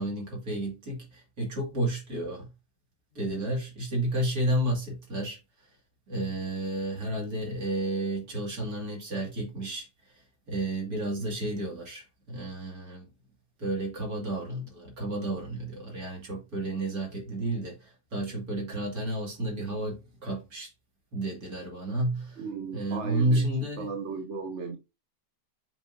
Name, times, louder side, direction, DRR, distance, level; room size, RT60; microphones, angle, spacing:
voice 1, 0.0-2.5 3.1-5.4 6.1-9.9 10.5-13.1 13.6-17.8 18.1-20.7 21.1-22.4 22.7-23.9, right 1 dB, 75° right, 3.1 m, -31 dB
voice 2, 22.4-23.5 23.8-24.8, right 5 dB, 55° right, 1.2 m, -35 dB
7.7 x 4.8 x 2.8 m
omnidirectional pair, 1.6 m